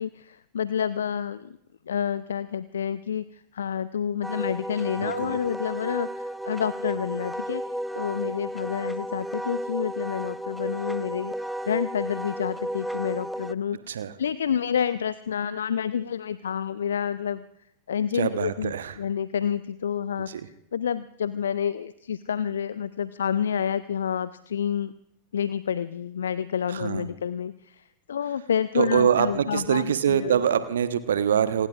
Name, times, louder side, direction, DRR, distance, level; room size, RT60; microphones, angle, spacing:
voice 1, 0.0-1.6 1.9-7.6 8.0-11.3 11.6-13.8 14.2-17.4 17.9-24.9 25.3-30.4, left 8 dB, 65° left, 16 dB, 0.5 m, -29 dB
Wind instrument woodwind instrument, 4.2-13.5, equal, ahead, 0.6 m, -33 dB
voice 2, 5.0-5.4 13.9-14.1 18.1-18.9 20.3-20.4 26.7-27.1 28.7-31.7, right 8 dB, 65° right, 12 dB, 1.0 m, -24 dB
27.5 x 20.0 x 2.5 m, 0.77 s
figure-of-eight pair, 90°, 0 cm